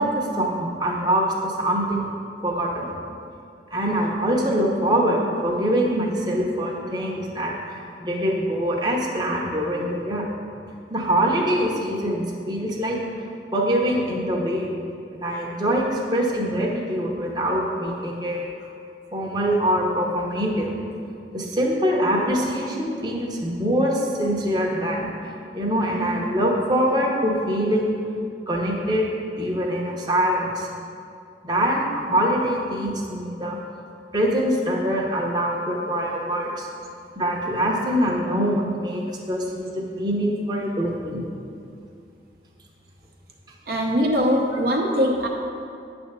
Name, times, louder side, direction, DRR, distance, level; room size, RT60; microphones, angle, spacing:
voice 1, 0.0-2.0 2.4-2.9 3.7-10.3 10.9-13.0 13.5-14.7 15.1-18.7 19.1-20.7 21.3-28.0 28.5-29.1 29.4-30.7 31.4-33.6 34.1-36.7 37.2-41.2, equal, 25° right, -2 dB, 0.9 m, -24 dB
voice 2, 43.7-45.3, equal, 55° right, -1 dB, 0.7 m, -22 dB
9.1 x 3.5 x 6.6 m, 2.5 s
head